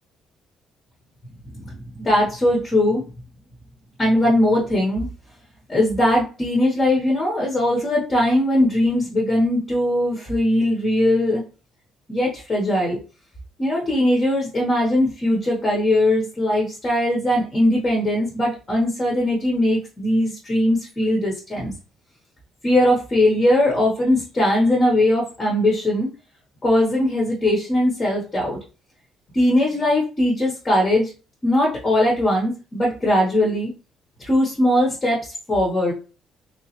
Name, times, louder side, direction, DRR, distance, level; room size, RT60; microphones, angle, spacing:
voice 1, 1.5-3.0 4.0-5.1 5.7-11.4 12.1-13.0 13.6-21.7 22.6-26.1 26.6-28.6 29.3-31.1 31.4-33.7 34.2-35.9, left 1 dB, 20° left, -2 dB, 0.9 m, -20 dB
3.3 x 3.0 x 2.9 m, 0.34 s
cardioid pair, 170°, 0 cm